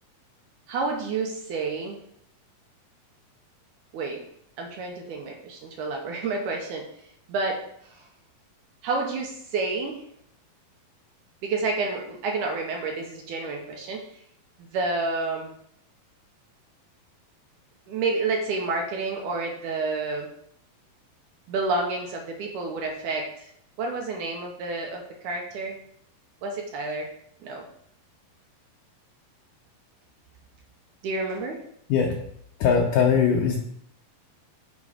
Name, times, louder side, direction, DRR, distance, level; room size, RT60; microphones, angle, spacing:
voice 1, 0.7-2.0 3.9-4.2 4.6-6.9 7.3-7.6 8.8-10.0 11.4-14.0 14.7-15.5 17.9-20.3 21.5-23.5 23.8-25.8 26.4-27.1 27.4-27.7 31.0-31.6, right 3 dB, 75° right, 1 dB, 2.0 m, -29 dB
voice 2, 32.6-33.6, left 6 dB, 75° left, 1 dB, 2.1 m, -20 dB
7.0 x 4.5 x 4.9 m, 0.70 s
omnidirectional pair, 4.2 m